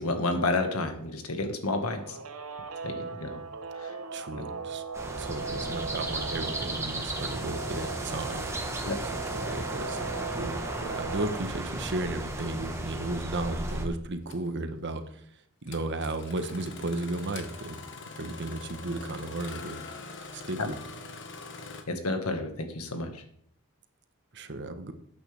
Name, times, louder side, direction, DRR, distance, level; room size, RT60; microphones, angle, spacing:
voice 1, 0.0-2.2 2.8-3.4 3.8-4.0 4.4-4.5 8.9-9.0 21.9-23.2, left 2 dB, 85° left, 5 dB, 1.8 m, -30 dB
Guitar, 2.0-11.4, right 4 dB, 75° right, 0.9 m, -39 dB
voice 2, 4.1-4.8 5.2-8.4 9.4-15.2 15.6-17.8 18.1-19.8 20.3-20.8 24.3-24.9, right 2 dB, 55° right, 8 dB, 1.1 m, -34 dB
sound 1, 4.9-13.9, right 2 dB, 15° right, 1.3 m, -35 dB
Engine starting, 13.0-13.1 14.3-14.5 15.7-21.8, left 3 dB, 60° left, 1.5 m, -43 dB
13.0 x 8.9 x 3.5 m, 0.66 s
head